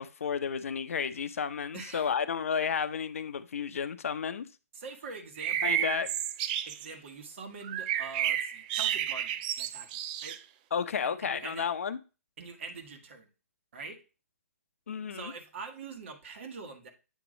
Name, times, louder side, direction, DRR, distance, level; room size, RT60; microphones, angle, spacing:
voice 1, 0.0-4.5 5.6-6.1 10.7-12.0 14.9-15.3, left 7 dB, 60° left, 0.6 m, -32 dB
voice 2, 1.7-2.1 4.7-5.9 6.7-9.9 10.2-10.4 11.0-11.7 12.4-13.3 13.7-14.0 15.1-16.9, right 4 dB, 50° right, 1.4 m, -44 dB
sound 1, 5.4-6.9 7.6-10.4, right 11 dB, 30° right, 0.5 m, -31 dB
8.4 x 3.0 x 5.0 m
figure-of-eight pair, 125°, 8 cm